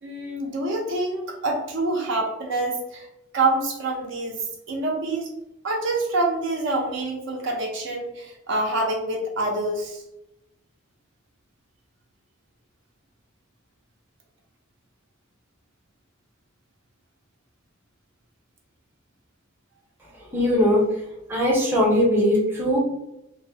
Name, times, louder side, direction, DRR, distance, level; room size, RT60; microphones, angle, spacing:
voice 1, 0.0-3.1 3.3-5.3 5.6-10.0, right 2 dB, 60° right, 0 dB, 0.5 m, -26 dB
voice 2, 20.1-21.0 21.3-22.8, left 1 dB, 10° right, -4 dB, 0.6 m, -20 dB
2.6 x 2.0 x 2.6 m, 0.87 s
head